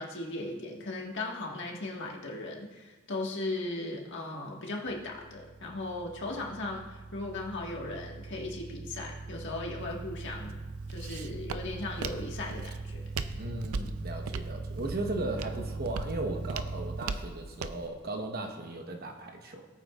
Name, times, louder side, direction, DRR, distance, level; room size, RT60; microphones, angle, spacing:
voice 1, 0.0-10.6 10.9-13.0, left 2 dB, 55° left, -1 dB, 1.7 m, -37 dB
sound 1, 4.9-17.0, right 3 dB, 20° right, 0.4 m, -41 dB
Walk footsteps, 9.8-17.9, right 4 dB, 80° right, 0.5 m, -40 dB
voice 2, 13.3-19.7, right 2 dB, 45° right, 3 dB, 1.1 m, -36 dB
18.5 x 8.8 x 2.5 m, 1.3 s
head